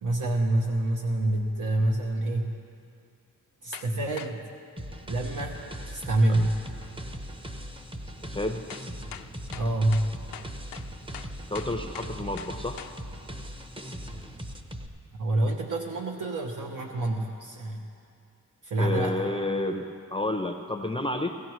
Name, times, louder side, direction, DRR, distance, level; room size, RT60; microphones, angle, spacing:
voice 1, 0.0-2.5 3.6-4.4 5.1-5.6 5.9-6.5 9.5-10.1 15.2-17.9 18.6-19.2, right 1 dB, 65° right, 0 dB, 0.9 m, -27 dB
sound 1, 3.7-3.9 4.2-4.4 6.8-6.9 8.7-13.0, left 10 dB, 80° left, 0.5 m, -43 dB
sound 2, 4.8-14.9, equal, 15° right, 0.8 m, -39 dB
voice 2, 8.3-8.8 11.5-12.8 18.8-21.4, left 2 dB, 15° left, 5 dB, 0.6 m, -30 dB
17.5 x 16.0 x 3.1 m, 2.5 s
wide cardioid pair, 95°, 34 cm